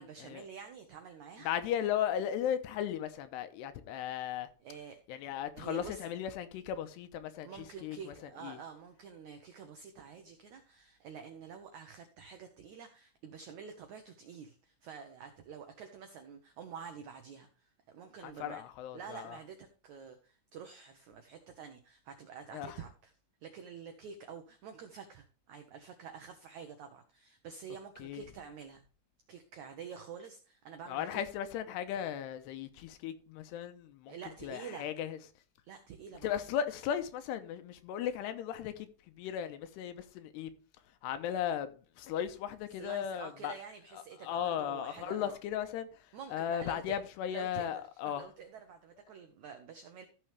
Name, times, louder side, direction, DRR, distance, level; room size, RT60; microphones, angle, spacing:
voice 1, 0.0-1.5 4.6-6.0 7.4-18.6 18.9-23.1 23.4-28.8 29.3-31.2 34.1-34.9 35.6-36.3 42.8-45.4 46.1-46.9 47.3-50.1, right 6 dB, 85° right, 1.6 m, -48 dB
voice 2, 1.4-4.5 5.1-8.0 8.4-8.6 18.2-19.4 22.5-22.8 28.0-28.2 30.9-34.1 34.4-35.2 36.2-38.9 39.2-40.5 41.0-41.7 42.0-43.5 44.2-45.9 46.3-48.3, left 9 dB, 80° left, 3.0 m, -36 dB
14.5 x 6.2 x 3.4 m
omnidirectional pair, 4.8 m